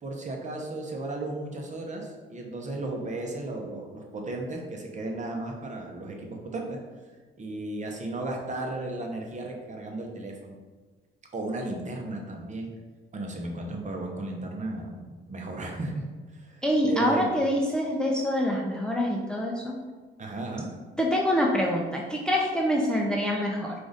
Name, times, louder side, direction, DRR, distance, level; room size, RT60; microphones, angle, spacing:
voice 1, 0.0-6.8 7.4-10.6 11.3-12.7 13.1-16.0 16.3-17.3 20.2-20.7, right 2 dB, 40° right, 1 dB, 0.9 m, -35 dB
voice 2, 16.6-19.7 21.0-23.7, equal, 5° left, -1 dB, 0.5 m, -25 dB
4.7 x 2.5 x 4.0 m, 1.4 s
cardioid pair, 90°, 20 cm